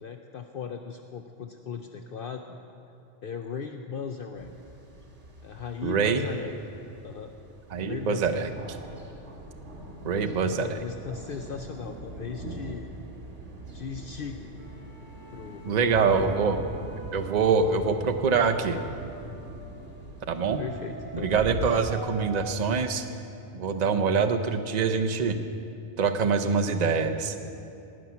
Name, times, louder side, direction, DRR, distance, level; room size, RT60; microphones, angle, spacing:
voice 1, 0.0-2.5 3.2-4.5 5.4-6.5 7.0-7.3 7.8-8.5 10.2-12.9 13.7-14.5 15.3-16.2 20.6-21.7, left 6 dB, 60° left, 5 dB, 0.7 m, -37 dB
sound 1, 4.4-21.7, right 2 dB, 90° right, 2.1 m, -42 dB
voice 2, 5.8-6.2 7.7-8.5 10.0-10.8 15.6-16.6 17.1-18.8 20.3-20.6 21.1-23.0 23.5-25.4 26.0-27.4, right 5 dB, 45° right, 6 dB, 0.8 m, -25 dB
sound 2, 14.6-19.6 20.3-22.5, right 2 dB, 70° right, 2.9 m, -47 dB
17.0 x 5.9 x 9.5 m, 2.7 s
omnidirectional pair, 1.2 m